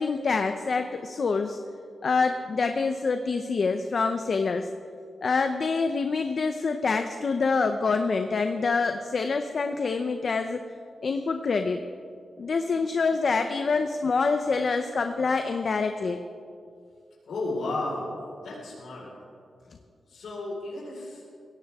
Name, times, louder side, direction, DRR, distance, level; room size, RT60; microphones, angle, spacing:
voice 1, 0.0-1.6 2.0-4.7 5.2-10.6 11.0-11.8 12.4-16.2, left 4 dB, 45° left, 7 dB, 0.7 m, -26 dB
voice 2, 17.3-18.1 18.4-19.1 20.1-21.3, left 2 dB, 85° left, -5 dB, 4.5 m, -33 dB
21.5 x 16.5 x 3.6 m, 2.3 s
wide cardioid pair, 155°, 0 cm